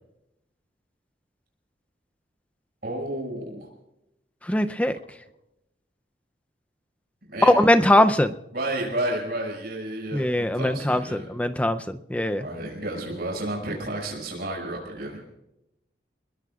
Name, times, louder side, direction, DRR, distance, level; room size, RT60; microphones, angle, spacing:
voice 1, 2.8-3.7 7.3-7.6 8.5-11.3 12.4-15.2, right 1 dB, 60° right, -1 dB, 6.2 m, -31 dB
voice 2, 4.4-5.0 7.4-8.3 10.1-12.4, left 1 dB, 10° left, 9 dB, 0.5 m, -21 dB
28.0 x 21.0 x 2.4 m, 0.88 s
head